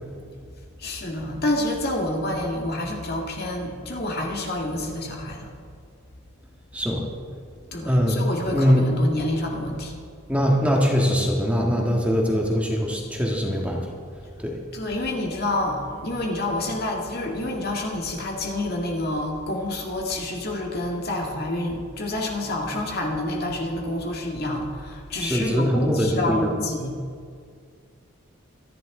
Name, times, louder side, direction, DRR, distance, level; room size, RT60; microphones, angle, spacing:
voice 1, 0.8-5.5 7.7-9.9 14.7-27.0, left 1 dB, 50° left, 0 dB, 2.0 m, -28 dB
voice 2, 6.7-7.0 7.9-8.2 8.5-8.9 10.3-13.9 14.4-14.6 25.2-26.5, equal, 5° right, -1 dB, 1.6 m, -22 dB
25.5 x 11.0 x 3.8 m, 2.2 s
head